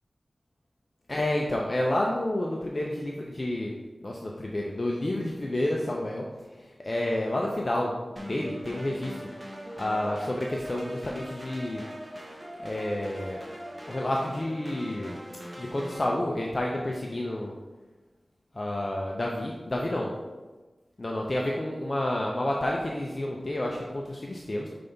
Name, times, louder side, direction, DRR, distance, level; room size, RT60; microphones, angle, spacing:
voice 1, 1.1-3.7 4.0-6.3 6.6-9.3 9.8-11.8 12.6-13.4 13.9-15.1 15.6-17.5 18.5-20.1 21.0-24.7, left 1 dB, 40° left, -1 dB, 0.6 m, -30 dB
sound 1, 8.2-16.2, equal, 20° right, 0.9 m, -41 dB
5.3 x 3.4 x 5.3 m, 1.2 s
wide cardioid pair, 80°, 0 cm